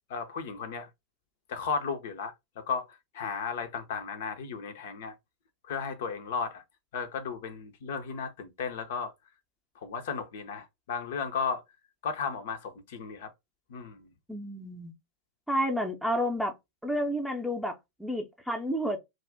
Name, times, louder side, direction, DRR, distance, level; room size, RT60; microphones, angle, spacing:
voice 1, 0.1-0.9 1.5-5.1 5.7-6.6 6.9-9.1 9.8-11.6 12.0-13.3 13.7-14.1, left 5 dB, 55° left, 0.5 m, -34 dB
voice 2, 14.3-14.9 15.5-16.5 16.8-19.0, equal, ahead, 0.6 m, -30 dB
2.4 x 2.1 x 3.3 m
figure-of-eight pair, 90°, 0 cm